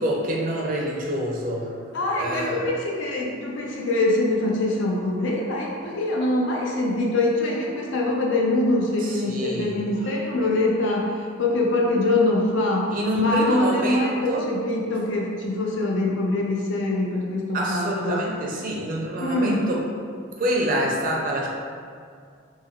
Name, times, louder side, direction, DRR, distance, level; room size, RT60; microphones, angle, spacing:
voice 1, 0.0-1.7 2.2-2.6 9.0-9.8 12.9-14.5 17.5-19.9 20.4-21.5, equal, 45° right, -2 dB, 0.4 m, -26 dB
voice 2, 1.9-18.3 19.2-19.6, left 2 dB, 65° left, -2 dB, 0.4 m, -24 dB
3.4 x 2.2 x 2.2 m, 2.2 s
head